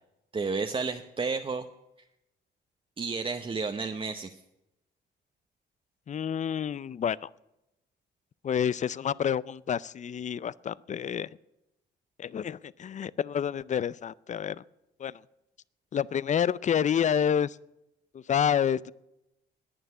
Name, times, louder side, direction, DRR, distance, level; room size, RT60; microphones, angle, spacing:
voice 1, 0.3-1.7 3.0-4.3, right 4 dB, 25° right, 5 dB, 0.8 m, -31 dB
voice 2, 6.1-7.3 8.4-11.3 12.2-14.6 15.0-15.2 15.9-17.6 18.1-18.9, left 8 dB, 40° left, 21 dB, 0.4 m, -28 dB
11.0 x 9.3 x 9.9 m, 0.91 s
cardioid pair, 90°, 20 cm